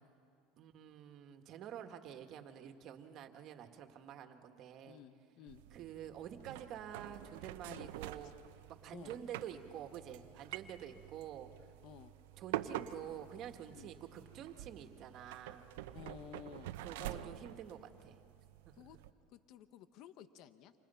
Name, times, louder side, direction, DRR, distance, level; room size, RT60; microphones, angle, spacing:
voice 1, 0.6-5.0 5.7-8.3 8.7-11.7 12.4-15.7 16.8-18.2 18.7-18.8, right 9 dB, 50° right, 6 dB, 2.0 m, -48 dB
voice 2, 4.9-5.6 7.6-7.9 8.9-9.1 11.8-12.1 13.7-13.9 15.9-17.2 18.8-19.0 19.3-20.7, left 9 dB, 55° left, 11 dB, 1.0 m, -54 dB
sound 1, 5.5-19.1, right 13 dB, 85° right, 0.9 m, -47 dB
29.5 x 26.5 x 5.8 m, 2.5 s
supercardioid pair, 120°, 0 cm